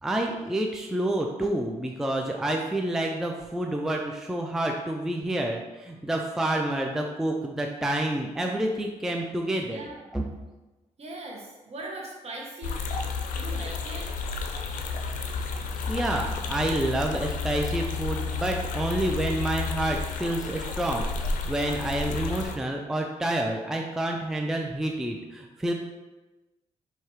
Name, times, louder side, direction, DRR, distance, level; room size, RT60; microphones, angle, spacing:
voice 1, 0.0-9.8 10.1-10.2 15.9-25.7, right 1 dB, 5° right, 1 dB, 0.3 m, -28 dB
voice 2, 9.7-10.1 11.0-13.1 13.3-14.1, right 2 dB, 55° right, -1 dB, 1.1 m, -40 dB
sound 1, 12.6-22.6, left 4 dB, 85° left, 0.4 m, -31 dB
4.6 x 2.8 x 3.0 m, 1.1 s
cardioid pair, 85°, 13 cm